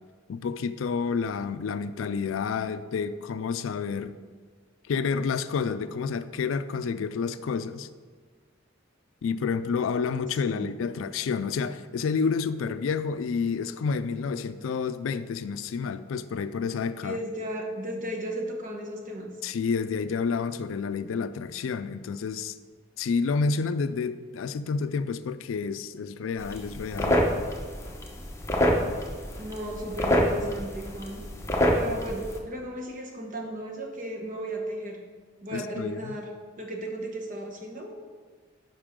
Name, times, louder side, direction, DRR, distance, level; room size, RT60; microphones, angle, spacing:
voice 1, 0.3-4.1 4.9-7.9 9.2-17.2 19.4-22.6 23.0-27.2 35.5-36.1, left 5 dB, 85° left, 13 dB, 0.4 m, -29 dB
voice 2, 17.0-19.4 29.4-31.2 31.7-35.0 35.4-36.3 36.6-37.9, right 1 dB, 45° right, 1 dB, 1.2 m, -35 dB
sound 1, 26.4-32.4, equal, 15° left, 0.9 m, -27 dB
9.8 x 5.4 x 3.7 m, 1.5 s
head